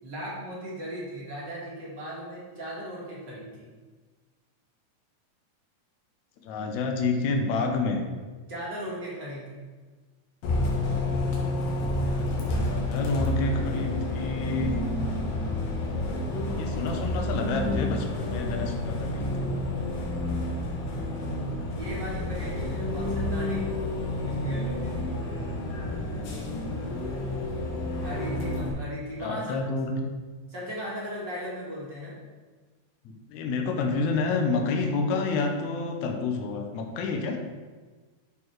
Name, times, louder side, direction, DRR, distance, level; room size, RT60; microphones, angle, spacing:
voice 1, 0.0-3.7 8.5-9.7 21.7-23.7 24.2-25.2 28.0-29.6 30.5-32.2, equal, 40° right, -6 dB, 1.9 m, -37 dB
voice 2, 6.4-8.0 12.1-14.8 16.5-19.5 20.7-21.6 28.0-28.8 29.2-30.1 33.3-37.4, left 3 dB, 70° left, 3 dB, 2.0 m, -29 dB
Bus, 10.4-28.7, left 1 dB, 85° left, 3.2 m, -29 dB
11.5 x 4.4 x 4.6 m, 1.4 s
omnidirectional pair, 4.0 m